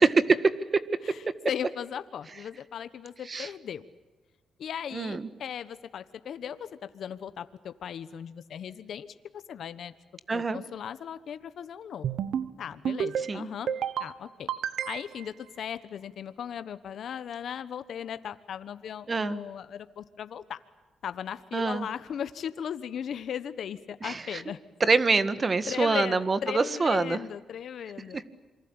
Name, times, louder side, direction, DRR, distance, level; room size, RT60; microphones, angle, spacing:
voice 1, 0.3-0.8 3.3-3.5 4.9-5.3 10.3-10.6 13.3-13.5 19.1-19.4 21.5-21.9 24.0-24.4 24.8-27.2 28.1-28.2, right 4 dB, 35° right, 13 dB, 1.8 m, -26 dB
voice 2, 1.0-3.8 4.6-9.1 9.3-9.9 10.3-12.1 12.6-13.7 14.0-14.5 14.8-20.6 21.0-24.6 25.7-28.2, left 8 dB, 70° left, 12 dB, 1.2 m, -37 dB
sound 1, 12.0-12.5 12.8-13.3 13.7-14.1 14.5-15.3, right 8 dB, 75° right, 1.3 m, -30 dB
27.5 x 24.5 x 8.9 m, 1.2 s
cardioid pair, 80°, 0 cm